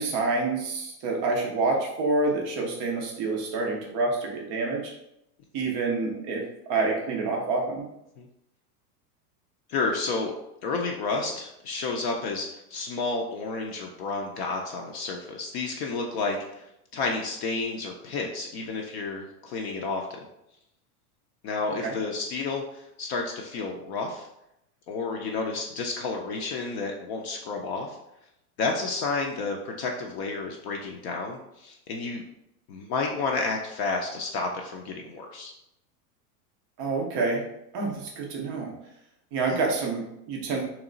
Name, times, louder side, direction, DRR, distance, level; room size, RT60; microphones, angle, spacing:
voice 1, 0.0-4.8 5.5-6.4 6.7-7.8 21.8-21.9 36.8-37.4 37.7-38.7 39.3-40.6, right 3 dB, 20° right, 0 dB, 0.3 m, -27 dB
voice 2, 9.7-10.3 10.6-16.7 16.9-20.1 21.4-24.3 24.9-28.0 28.6-32.2 32.7-35.5 39.5-39.6, left 3 dB, 45° left, 1 dB, 0.5 m, -31 dB
3.2 x 3.0 x 3.7 m, 0.82 s
supercardioid pair, 145°, 48 cm